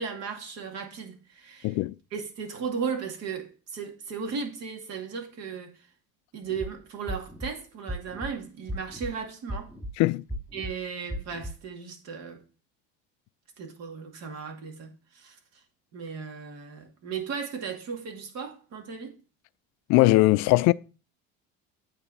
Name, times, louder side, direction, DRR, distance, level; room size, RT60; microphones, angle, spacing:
voice 1, 0.0-1.8 2.1-5.9 6.3-9.7 10.5-12.4 13.6-15.4 15.9-19.1, right 6 dB, 60° right, 2.3 m, -36 dB
voice 2, 1.6-1.9 10.0-10.2 19.9-20.7, left 20 dB, 65° left, 0.5 m, -20 dB
sound 1, 6.5-6.7 7.1-7.5 7.9-8.3 8.7-9.1 9.5-9.9 10.3-10.7 11.1-11.5, equal, 5° right, 2.0 m, -35 dB
8.9 x 3.7 x 6.9 m
supercardioid pair, 105°, 29 cm